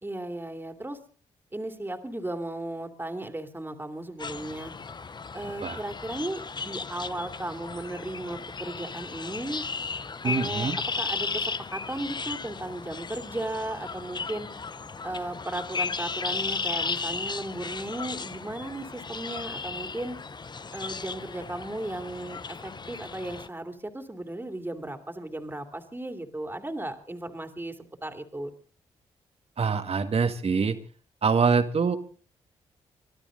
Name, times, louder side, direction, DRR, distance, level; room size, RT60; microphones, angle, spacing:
voice 1, 0.0-1.0 1.5-4.7 5.3-9.6 10.2-10.7 11.0-14.5 15.0-20.2 20.7-27.7 28.0-28.5, right 1 dB, 15° right, 7 dB, 2.7 m, -35 dB
sound 1, 4.2-23.5, left 4 dB, 35° left, 0.8 m, -35 dB
voice 2, 10.2-10.8 29.6-30.8 31.2-32.0, right 5 dB, 50° right, 9 dB, 1.8 m, -24 dB
24.5 x 12.5 x 3.9 m, 0.38 s
supercardioid pair, 50°, 13 cm